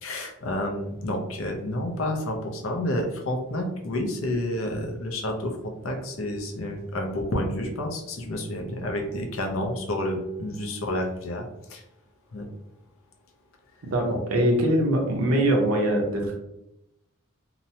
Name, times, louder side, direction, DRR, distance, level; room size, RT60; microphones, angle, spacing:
voice 1, 0.0-11.4 11.7-11.8 12.3-12.4, left 1 dB, 75° left, 3 dB, 0.5 m, -29 dB
voice 2, 13.9-16.4, right 1 dB, 90° right, 1 dB, 0.7 m, -22 dB
2.8 x 2.1 x 2.7 m, 0.84 s
head